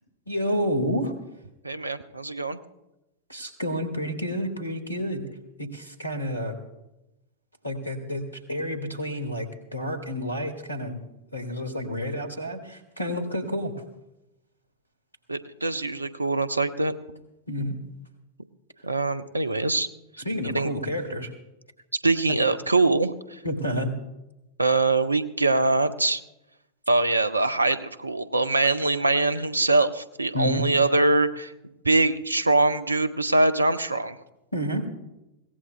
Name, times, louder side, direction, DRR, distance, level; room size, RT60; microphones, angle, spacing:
voice 1, 0.3-1.1 3.3-5.3 5.6-6.6 7.6-11.0 11.3-13.8 17.5-17.8 20.2-21.3 22.3-22.4 23.4-24.0 30.3-30.7 34.5-34.9, equal, 85° left, 9 dB, 1.7 m, -29 dB
voice 2, 1.6-2.6 15.3-16.9 18.8-19.9 20.5-20.7 22.0-23.4 24.6-26.2 26.9-31.5 31.8-34.2, right 2 dB, 80° right, 14 dB, 0.6 m, -23 dB
22.0 x 17.5 x 2.2 m, 0.94 s
figure-of-eight pair, 90°, 0 cm